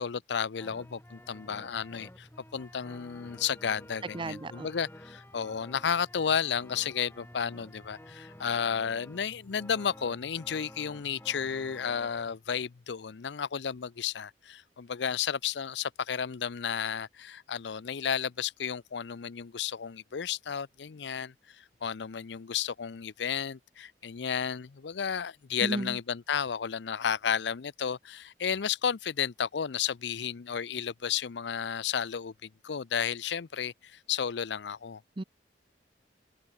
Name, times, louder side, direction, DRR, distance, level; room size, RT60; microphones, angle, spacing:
voice 1, 0.0-35.0, left 7 dB, 75° left, 0.5 m, -33 dB
sound 1, 0.6-12.4, left 1 dB, 15° left, 5.2 m, -51 dB
voice 2, 4.1-4.7 25.6-26.0 35.2-35.3, right 2 dB, 30° right, 0.6 m, -34 dB
head